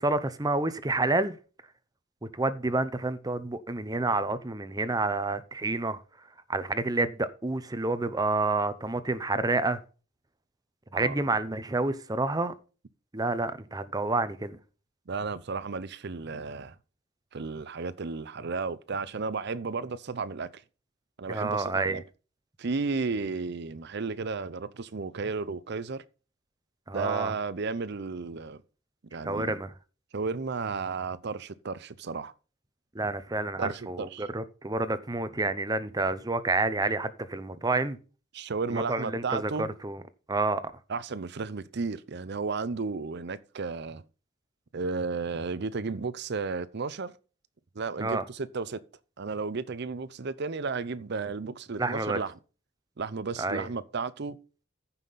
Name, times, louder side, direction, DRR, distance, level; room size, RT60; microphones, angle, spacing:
voice 1, 0.0-1.4 2.2-6.0 6.5-9.8 10.9-12.5 13.1-14.6 21.3-22.0 26.9-27.3 29.2-29.7 32.9-38.0 38.7-40.0 40.3-40.6 48.0-48.2 51.8-52.2 53.4-53.7, right 2 dB, 20° right, 0.7 m, -29 dB
voice 2, 15.1-16.8 17.3-20.6 21.2-22.0 22.6-26.0 26.9-28.6 29.1-29.6 30.1-32.3 33.6-34.2 38.3-39.7 40.9-44.0 44.7-47.1 47.7-48.8 49.2-52.3 53.0-54.4, right 4 dB, 55° right, 0.6 m, -33 dB
14.5 x 5.7 x 4.1 m
head